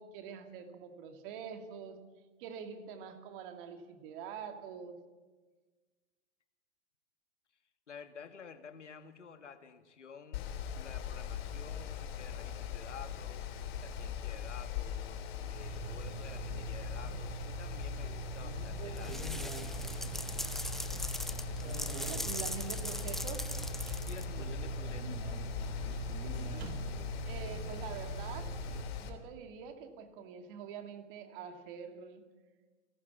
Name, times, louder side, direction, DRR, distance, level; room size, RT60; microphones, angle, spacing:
voice 1, 0.0-2.0 2.4-5.0 21.6-23.5 26.1-26.9 27.3-28.5 29.0-32.2, right 7 dB, 50° right, 7 dB, 2.4 m, -45 dB
voice 2, 7.9-13.5 13.8-19.9 24.1-25.2, left 6 dB, 85° left, 9 dB, 2.0 m, -51 dB
Mechanical fan, 10.3-29.1, left 9 dB, 55° left, 3.1 m, -41 dB
sound 1, 15.5-28.8, right 4 dB, 65° right, 3.0 m, -41 dB
sound 2, 19.0-24.5, left 1 dB, ahead, 0.7 m, -41 dB
29.5 x 12.0 x 7.2 m, 1.3 s
hypercardioid pair, 115°, 35 cm